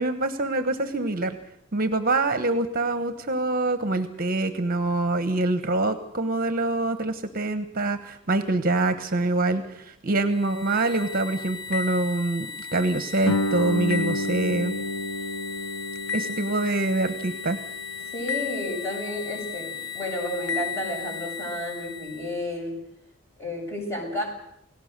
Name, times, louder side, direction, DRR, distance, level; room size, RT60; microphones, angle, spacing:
voice 1, 0.0-1.4 1.7-14.7 16.1-17.6, right 2 dB, 45° right, 11 dB, 1.1 m, -25 dB
sound 1, 10.3-22.4, left 6 dB, 60° left, 1.4 m, -35 dB
Guitar, 13.2-18.6, left 1 dB, 90° left, 1.4 m, -30 dB
voice 2, 18.1-22.8 23.4-24.2, left 1 dB, 15° left, 0 dB, 6.8 m, -31 dB
29.0 x 17.5 x 6.7 m, 0.73 s
head